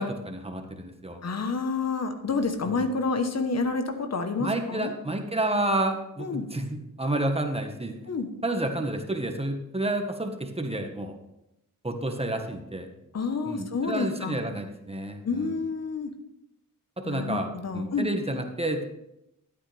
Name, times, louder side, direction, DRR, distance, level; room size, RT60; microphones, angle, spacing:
voice 1, 0.0-1.2 2.6-2.8 4.4-8.0 8.4-11.1 11.8-12.9 13.4-15.5 17.0-18.9, right 1 dB, 20° right, 4 dB, 1.6 m, -30 dB
voice 2, 1.2-4.9 6.2-6.5 8.1-8.3 13.1-14.4 15.2-16.1 17.1-18.1, left 4 dB, 55° left, 7 dB, 1.2 m, -29 dB
13.5 x 8.8 x 3.5 m, 0.86 s
cardioid pair, 70°, 32 cm